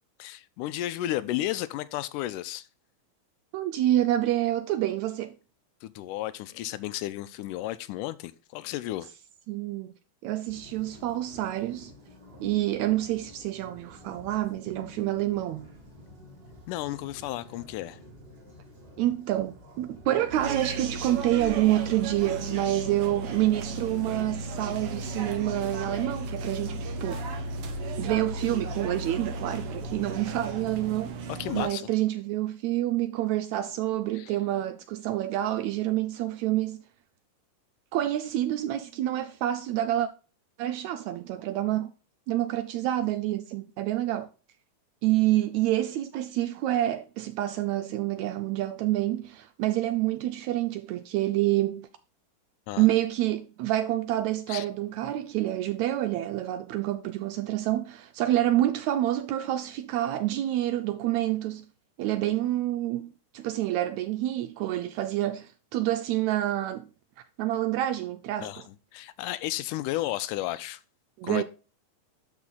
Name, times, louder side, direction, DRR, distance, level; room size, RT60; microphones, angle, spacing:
voice 1, 0.2-2.7 5.8-9.1 16.7-18.0 31.3-31.9 34.1-34.4 52.7-52.9 54.5-54.7 68.4-70.8 71.2-71.4, left 15 dB, 85° left, 2.1 m, -33 dB
voice 2, 3.5-5.3 9.5-9.9 10.2-11.9 12.4-15.7 19.0-27.3 28.0-31.1 31.5-36.8 37.9-40.1 40.6-41.9 42.3-44.3 45.0-51.9 52.8-61.6 62.0-66.8 67.4-68.6 71.2-71.4, right 14 dB, 80° right, 1.7 m, -27 dB
sound 1, 10.5-30.3, left 1 dB, 30° right, 2.8 m, -51 dB
sound 2, 20.3-31.7, right 2 dB, 60° right, 1.6 m, -35 dB
12.0 x 4.2 x 3.8 m
omnidirectional pair, 3.7 m